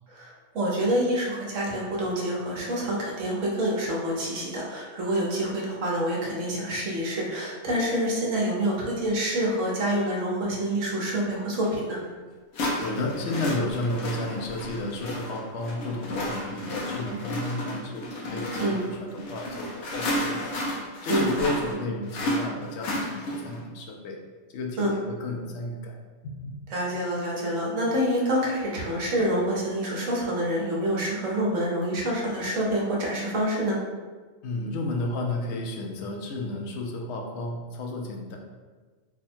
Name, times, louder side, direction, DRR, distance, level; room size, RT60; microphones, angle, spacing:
voice 1, 0.1-12.0 18.6-18.8 21.1-21.3 24.8-24.9 26.7-33.8, right 1 dB, 65° right, -3 dB, 1.2 m, -27 dB
sound 1, 11.6-11.7 12.5-23.6, left 1 dB, 85° left, 1.2 m, -32 dB
voice 2, 12.8-20.5 21.0-24.2 24.5-26.0 26.2-26.6 34.4-38.4, left 2 dB, 60° left, 1 dB, 0.8 m, -32 dB
3.5 x 2.2 x 4.3 m, 1.4 s
omnidirectional pair, 1.5 m